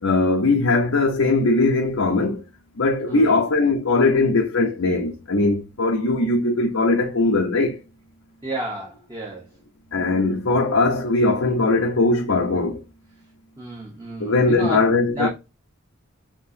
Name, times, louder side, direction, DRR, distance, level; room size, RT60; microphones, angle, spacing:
voice 1, 0.0-2.4 2.8-7.8 9.9-12.8 14.2-15.3, left 3 dB, 80° left, 0.8 m, -20 dB
voice 2, 3.1-3.4 8.4-9.5 13.6-15.3, right 1 dB, 20° right, 0.9 m, -31 dB
5.2 x 3.0 x 2.7 m
head